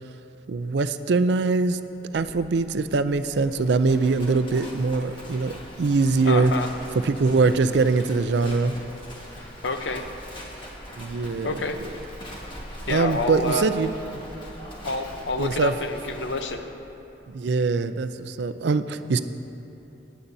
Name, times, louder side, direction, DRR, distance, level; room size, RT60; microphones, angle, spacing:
voice 1, 0.5-1.8 2.1-6.5 7.0-8.7 11.0-11.6 12.9-13.9 15.4-15.7 17.3-19.2, right 4 dB, 70° right, 11 dB, 0.4 m, -23 dB
Livestock farm animals working animals, 2.1-16.5, equal, 30° left, 1.5 m, -41 dB
voice 2, 6.2-6.7 9.6-10.0 11.4-11.8 12.9-13.7 14.8-16.6, left 2 dB, 85° left, 6 dB, 0.7 m, -28 dB
18.0 x 10.0 x 2.7 m, 2.9 s
head